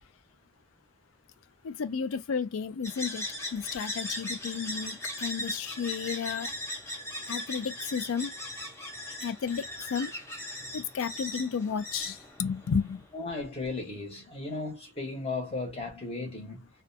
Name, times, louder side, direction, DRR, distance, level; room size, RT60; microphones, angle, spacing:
voice 1, 1.6-3.2 3.5-6.5 7.3-8.3 9.2-10.1 10.7-13.0, left 6 dB, 85° left, 0.4 m, -32 dB
sound 1, 2.8-13.0, left 1 dB, 15° left, 0.6 m, -38 dB
voice 2, 13.1-16.7, left 3 dB, 30° left, 1.0 m, -35 dB
2.5 x 2.2 x 2.6 m
head